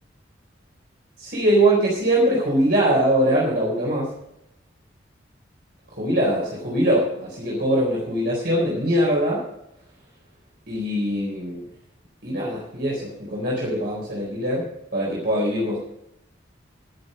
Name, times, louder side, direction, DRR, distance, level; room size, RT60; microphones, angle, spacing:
voice 1, 1.2-4.1 5.9-9.4 10.7-11.7 12.2-15.8, right 1 dB, 55° right, -4 dB, 4.0 m, -22 dB
18.5 x 6.9 x 5.4 m, 0.80 s
head